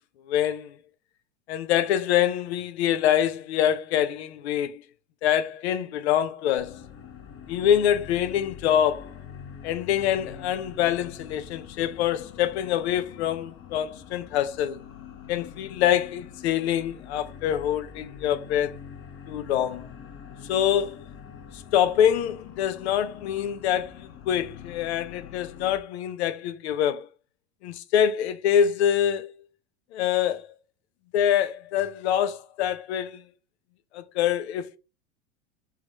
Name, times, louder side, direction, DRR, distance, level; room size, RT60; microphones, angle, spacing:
voice 1, 0.3-0.7 1.5-4.8 5.2-6.8 7.5-9.1 9.6-14.8 15.3-18.7 19.3-19.9 20.5-21.0 21.5-27.1 27.6-29.3 29.9-30.5 31.1-33.2 33.9-34.8, left 10 dB, 70° left, 0.7 m, -25 dB
sound 1, 6.6-25.8, left 8 dB, 40° left, 1.0 m, -44 dB
3.5 x 3.3 x 4.1 m
hypercardioid pair, 100°, 34 cm